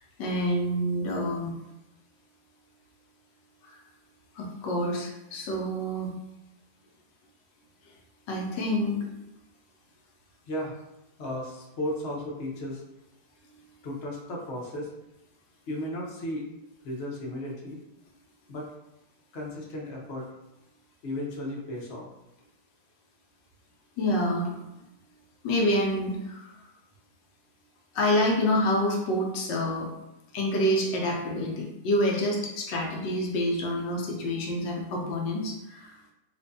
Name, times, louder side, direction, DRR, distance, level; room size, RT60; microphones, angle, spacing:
voice 1, 0.2-1.6 3.6-3.8 4.4-6.1 8.3-9.1 24.0-24.5 25.4-26.5 27.9-29.9 30.3-36.1, left 1 dB, 85° left, 0 dB, 1.4 m, -27 dB
voice 2, 10.5-10.8 11.2-12.8 13.8-14.9 15.7-16.5 16.8-17.8 18.5-18.7 19.3-20.3 21.0-22.1, left 1 dB, 50° left, -3 dB, 0.8 m, -34 dB
4.2 x 2.6 x 2.6 m, 0.92 s
omnidirectional pair, 1.9 m